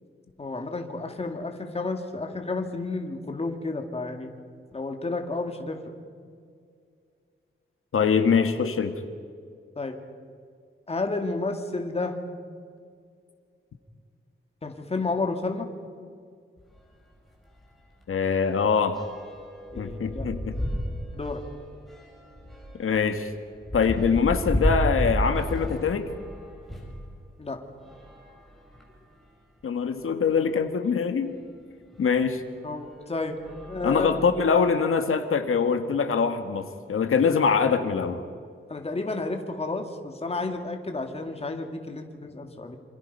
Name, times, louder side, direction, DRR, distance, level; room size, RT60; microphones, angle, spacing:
voice 1, 0.4-4.3 4.7-5.9 9.8-9.9 10.9-12.2 14.6-15.7 19.7-20.3 21.1-21.4 27.4-27.6 32.6-33.4 33.7-34.1 38.7-42.8, left 3 dB, 30° left, 4 dB, 2.3 m, -31 dB
voice 2, 7.9-9.0 18.1-19.0 19.8-20.5 22.8-23.3 23.7-26.1 29.6-31.4 32.0-32.4 33.8-38.2, left 6 dB, 90° left, 7 dB, 1.7 m, -23 dB
sound 1, 16.6-16.8 17.1-17.3 17.6-27.0 27.8-29.1 29.8-29.9 30.1-30.2 31.9-32.0 32.7-33.0 33.3-34.6, equal, ahead, 4.9 m, -32 dB
27.5 x 26.5 x 5.5 m, 2.2 s
wide cardioid pair, 160°, 21 cm